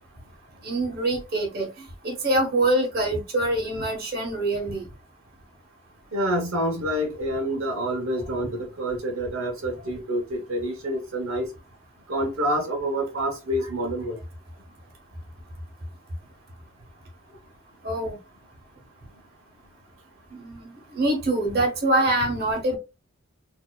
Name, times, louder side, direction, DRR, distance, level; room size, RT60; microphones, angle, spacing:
voice 1, 0.6-4.9 17.8-18.2 20.3-22.8, right 1 dB, 45° right, 1.2 m, -25 dB
voice 2, 6.1-11.5 12.1-14.2, equal, 75° right, 1.0 m, -27 dB
4.2 x 2.8 x 2.3 m
head